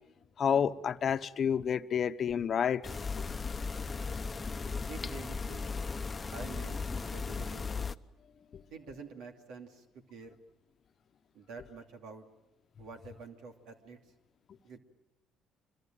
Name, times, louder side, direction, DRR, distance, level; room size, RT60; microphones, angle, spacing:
voice 1, 0.4-2.8, left 7 dB, 50° left, 1.1 m, -29 dB
sound 1, 2.8-8.0, left 4 dB, 25° left, 1.0 m, -36 dB
voice 2, 4.9-5.6 6.3-7.7 8.7-9.8 10.1-10.3 11.3-12.2 12.8-14.0 14.6-14.8, right 4 dB, 75° right, 2.7 m, -47 dB
26.5 x 22.5 x 9.1 m
supercardioid pair, 85°, 0 cm